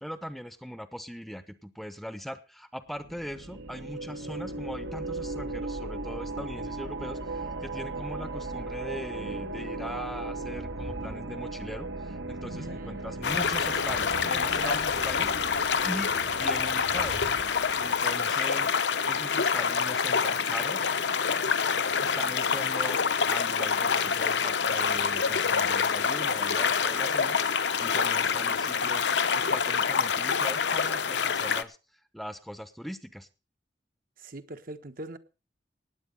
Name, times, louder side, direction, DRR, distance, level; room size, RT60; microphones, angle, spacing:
voice 1, 0.0-15.3 15.8-17.3 17.8-18.7 19.0-20.9 22.0-23.0 23.3-31.8 32.1-33.3, equal, ahead, 0.8 m, -40 dB
sound 1, 3.0-18.4, right 2 dB, 75° right, 1.6 m, -37 dB
sound 2, 10.4-12.0 13.4-15.1 16.7-18.2, equal, 90° right, 5.6 m, -45 dB
voice 2, 12.5-13.6 14.6-15.3 15.7-16.0 34.2-35.2, right 2 dB, 50° right, 1.3 m, -43 dB
sound 3, 13.2-31.6, left 6 dB, 65° left, 0.9 m, -26 dB
18.5 x 8.4 x 5.4 m
head